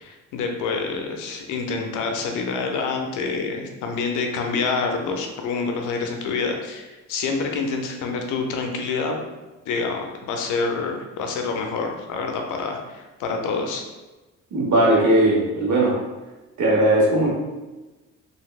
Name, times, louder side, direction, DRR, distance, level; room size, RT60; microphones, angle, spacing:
voice 1, 0.0-9.2 9.7-13.8, left 4 dB, 85° left, 3 dB, 0.5 m, -27 dB
voice 2, 14.5-15.9 16.6-17.3, right 1 dB, 70° right, -3 dB, 1.1 m, -18 dB
3.2 x 2.6 x 2.3 m, 1.1 s
cardioid pair, 90°, 30 cm